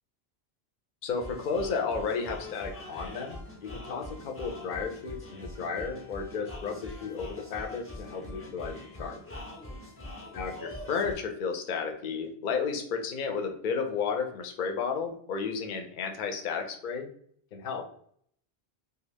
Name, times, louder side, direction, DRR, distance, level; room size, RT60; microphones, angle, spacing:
voice 1, 1.0-9.2 10.3-17.1 17.5-17.8, left 5 dB, 60° left, 3 dB, 0.6 m, -33 dB
sound 1, 1.1-11.1, left 1 dB, 20° left, 0.4 m, -43 dB
2.4 x 2.3 x 3.2 m, 0.63 s
omnidirectional pair, 1.1 m